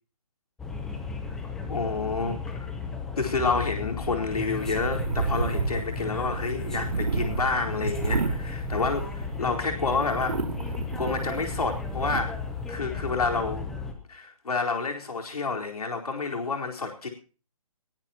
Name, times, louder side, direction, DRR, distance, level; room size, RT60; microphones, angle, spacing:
sound 1, 0.6-13.9, left 4 dB, ahead, 0.7 m, -35 dB
voice 1, 1.4-2.7 3.2-12.3 12.7-13.7 14.1-17.1, left 4 dB, 80° left, 2 dB, 4.3 m, -29 dB
sound 2, 4.6-9.4 9.8-12.2, right 4 dB, 85° right, 2.6 m, -31 dB
21.0 x 17.0 x 3.0 m, 0.37 s
hypercardioid pair, 170°, 19 cm